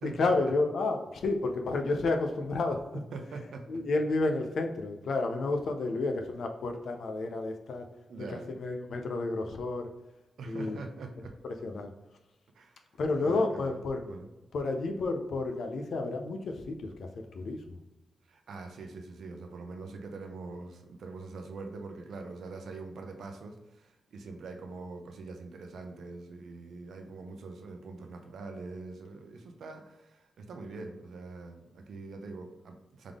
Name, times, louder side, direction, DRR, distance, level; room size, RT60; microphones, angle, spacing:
voice 1, 0.0-2.8 3.7-7.9 8.3-9.9 10.4-10.8 11.6-11.9 13.0-14.0 14.5-17.8, left 3 dB, 65° left, 5 dB, 0.5 m, -31 dB
voice 2, 2.9-3.8 8.1-8.6 10.4-11.4 12.5-12.8 13.2-14.3 18.3-33.1, right 3 dB, 75° right, 4 dB, 0.6 m, -43 dB
3.6 x 3.5 x 3.5 m, 1.0 s
wide cardioid pair, 140°, 0 cm